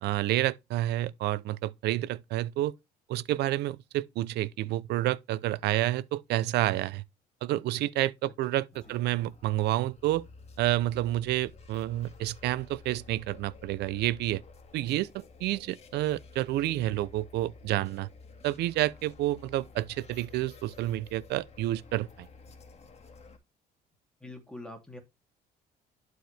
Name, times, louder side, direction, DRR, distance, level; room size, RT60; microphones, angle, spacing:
voice 1, 0.0-2.7 3.1-7.0 7.4-10.3 10.6-14.4 14.7-18.1 18.4-22.3, right 15 dB, 80° right, 0.7 m, -29 dB
sound 1, 8.7-23.4, left 4 dB, 40° left, 2.1 m, -52 dB
voice 2, 24.2-25.0, left 1 dB, 5° left, 2.9 m, -44 dB
11.5 x 4.8 x 3.4 m
cardioid pair, 110°, 17 cm